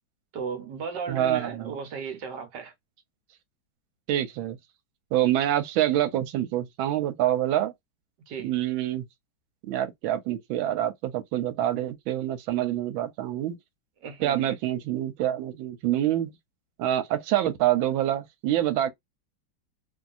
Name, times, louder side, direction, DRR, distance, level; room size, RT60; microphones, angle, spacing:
voice 1, 0.3-2.7 8.3-8.5 14.0-14.6, right 6 dB, 65° right, 1.3 m, -35 dB
voice 2, 1.1-1.7 4.1-4.6 5.1-7.7 8.4-9.0 9.7-13.6 14.2-16.3 16.8-18.9, right 12 dB, 85° right, 1.4 m, -26 dB
2.9 x 2.7 x 2.4 m
omnidirectional pair, 2.2 m